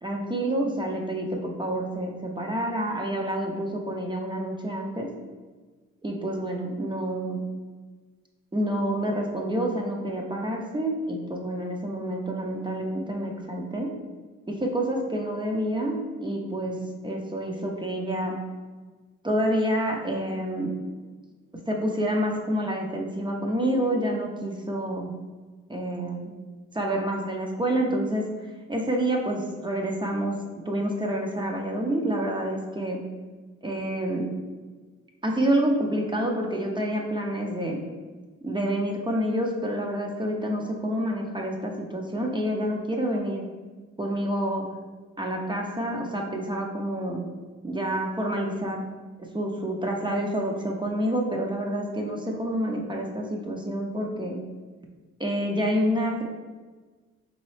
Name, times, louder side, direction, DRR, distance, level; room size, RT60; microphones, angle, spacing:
voice 1, 0.0-5.2 6.0-7.4 8.5-14.0 14.5-18.4 19.2-20.8 21.7-25.1 25.7-26.3 26.7-33.1 33.6-34.3 35.2-37.9 38.4-43.5 44.0-44.8 45.2-47.3 47.6-54.4 55.2-56.2, right 1 dB, 15° right, 0 dB, 0.6 m, -28 dB
4.1 x 3.6 x 3.2 m, 1.4 s
cardioid pair, 90°, 30 cm